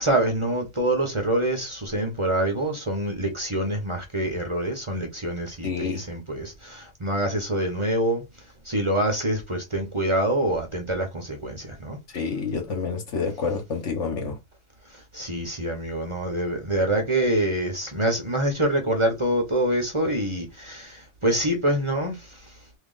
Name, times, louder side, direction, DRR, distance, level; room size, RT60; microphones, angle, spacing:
voice 1, 0.0-8.2 8.6-12.0 15.1-22.4, right 1 dB, 25° right, 0.9 m, -26 dB
voice 2, 5.6-6.0 12.1-14.4, left 5 dB, 70° left, 1.4 m, -28 dB
3.0 x 2.8 x 3.9 m
omnidirectional pair, 1.3 m